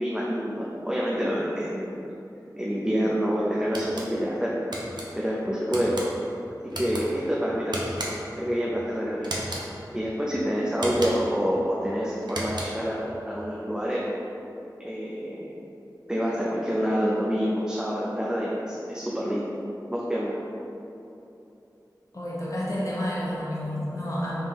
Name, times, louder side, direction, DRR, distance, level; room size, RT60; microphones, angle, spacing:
voice 1, 0.0-2.0 2.6-4.5 5.1-6.0 6.7-9.3 9.9-14.0 14.8-15.5 16.1-19.5 19.9-20.4, equal, 10° right, -6 dB, 0.5 m, -27 dB
sound 1, 3.7-4.1 4.7-5.1 5.7-6.1 6.7-7.0 7.7-8.3 9.2-9.7 10.7-11.3 12.2-12.9, right 1 dB, 85° right, 0.6 m, -34 dB
voice 2, 22.1-24.4, equal, 50° left, -7 dB, 1.0 m, -30 dB
4.7 x 3.6 x 3.0 m, 2.9 s
wide cardioid pair, 60°, 7 cm